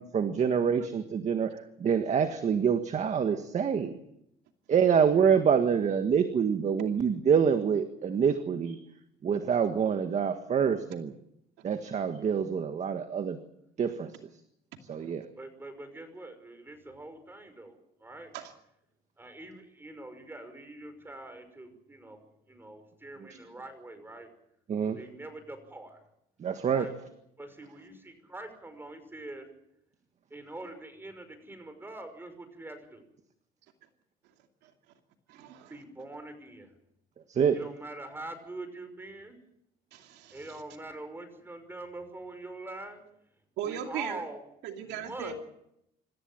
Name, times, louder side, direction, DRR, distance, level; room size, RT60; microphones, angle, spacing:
voice 1, 0.0-3.9 4.7-8.8 9.2-11.1 11.6-13.4 13.8-14.1 14.9-15.2 24.7-25.0 26.4-26.9 37.4-37.6, right 7 dB, 45° right, 8 dB, 1.7 m, -26 dB
voice 2, 15.4-18.3 19.2-22.2 22.5-24.3 24.8-26.0 26.7-27.0 27.4-29.5 30.3-33.0 35.7-36.7 37.5-39.4 40.3-43.0 43.6-44.4 44.8-45.4, right 2 dB, 15° right, 8 dB, 5.8 m, -44 dB
voice 3, 35.3-35.8 39.9-40.6 43.6-44.3 44.6-45.4, right 9 dB, 90° right, 4 dB, 2.6 m, -38 dB
26.5 x 14.5 x 9.1 m, 0.78 s
cardioid pair, 110°, 17 cm